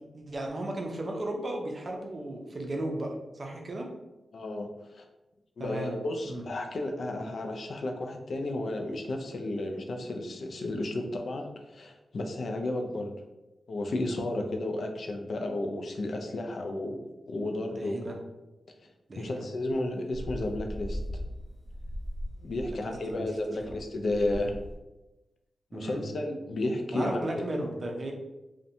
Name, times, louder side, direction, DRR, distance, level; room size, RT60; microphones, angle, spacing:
voice 1, 0.1-3.9 5.6-6.0 6.3-6.4 17.8-18.2 19.1-19.4 22.7-23.2 23.7-23.8 25.7-26.0 26.9-28.1, right 1 dB, 45° right, 1 dB, 0.5 m, -35 dB
voice 2, 4.3-5.0 5.6-13.1 13.7-17.0 17.3-18.0 19.2-21.0 22.4-24.6 25.7-27.5, left 1 dB, 65° left, 3 dB, 0.3 m, -32 dB
sound 1, 19.6-24.8, equal, 90° left, 0.7 m, -39 dB
2.5 x 2.1 x 2.6 m, 1.0 s
wide cardioid pair, 95°, 0 cm